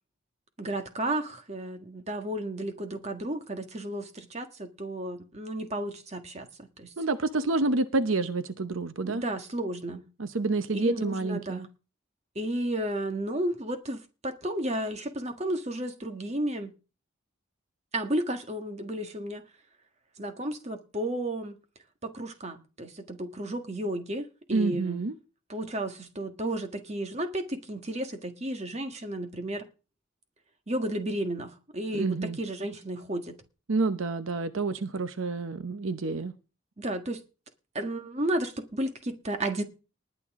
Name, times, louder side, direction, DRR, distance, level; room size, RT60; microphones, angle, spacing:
voice 1, 0.6-6.9 9.0-10.0 10.7-11.7 12.3-16.7 17.9-19.4 20.2-21.6 22.0-25.0 25.5-29.7 30.7-33.4 36.8-37.2 37.7-39.6, right 1 dB, 30° right, 1.6 m, -33 dB
voice 2, 7.0-9.2 10.2-11.7 24.5-25.1 31.9-32.4 33.7-36.3, right 3 dB, 80° right, 0.8 m, -28 dB
19.5 x 10.0 x 3.7 m
head